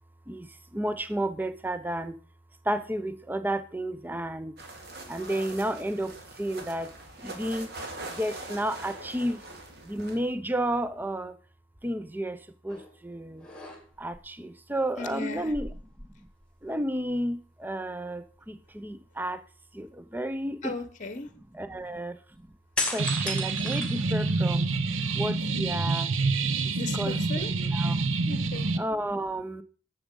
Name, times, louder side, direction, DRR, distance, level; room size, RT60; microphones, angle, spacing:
voice 1, 0.7-2.2 2.7-4.5 5.1-6.9 7.2-7.7 8.1-9.4 9.9-11.3 11.8-12.4 12.6-13.5 14.0-15.7 16.6-19.4 19.7-20.7 21.5-22.2 22.9-24.7 25.1-26.1 26.5-28.1 28.8-29.6, right 1 dB, 10° right, 0.5 m, -32 dB
sound 1, 4.6-10.3, right 2 dB, 55° right, 2.2 m, -42 dB
sound 2, 12.7-13.0 13.4-14.2 15.4-16.7 17.0-17.1 22.8-24.6 25.1-26.0, left 2 dB, 5° left, 2.3 m, -36 dB
voice 2, 15.0-15.5 20.6-21.3 26.8-27.5 28.2-28.7, left 3 dB, 40° left, 1.0 m, -36 dB
sound 3, 23.0-28.8, right 3 dB, 85° right, 0.8 m, -27 dB
10.5 x 7.3 x 5.3 m
head